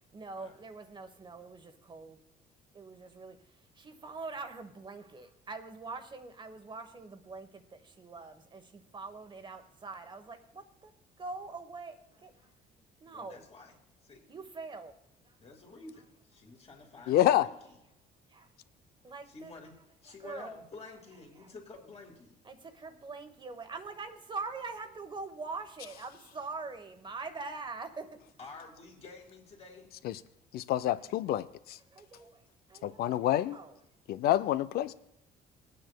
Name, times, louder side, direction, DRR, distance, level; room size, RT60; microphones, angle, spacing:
voice 1, 0.1-2.2 2.7-3.4 3.8-12.5 13.0-13.4 14.3-14.9 15.3-15.4 18.3-18.5 19.0-19.5 20.2-20.6 21.4-21.5 22.4-28.2 30.9-31.2 31.9-32.4 32.7-33.8, right 4 dB, 30° right, 7 dB, 1.1 m, -44 dB
voice 2, 13.0-13.7 14.0-14.2 15.4-17.8 19.3-19.7 20.0-22.4 28.4-29.9 34.8-34.9, left 3 dB, 35° left, 0 dB, 2.8 m, -50 dB
voice 3, 17.1-17.5 30.0-30.2 30.5-31.8 32.8-33.6 34.1-34.9, left 13 dB, 65° left, 15 dB, 0.4 m, -27 dB
19.5 x 9.1 x 2.2 m, 0.81 s
cardioid pair, 110°, 17 cm